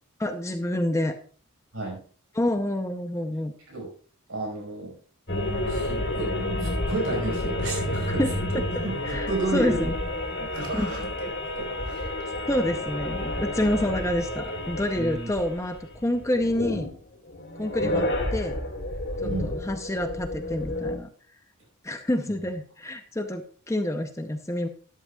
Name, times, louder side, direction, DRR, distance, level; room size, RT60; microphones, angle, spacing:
voice 1, 0.2-1.2 2.3-3.5 8.2-8.3 9.0-9.9 10.7-10.9 12.5-16.9 17.6-18.6 19.2-21.1 21.8-24.7, left 1 dB, 15° left, 7 dB, 0.6 m, -28 dB
voice 2, 4.3-5.0 5.7-6.3 6.6-8.2 8.5-9.9 10.4-12.1 15.0-15.3 17.8-18.0 19.2-19.5, right 2 dB, 65° right, 1 dB, 4.9 m, -32 dB
sound 1, 5.3-17.0 17.3-21.0, left 1 dB, 55° left, 3.0 m, -30 dB
12.5 x 11.0 x 2.3 m, 0.43 s
head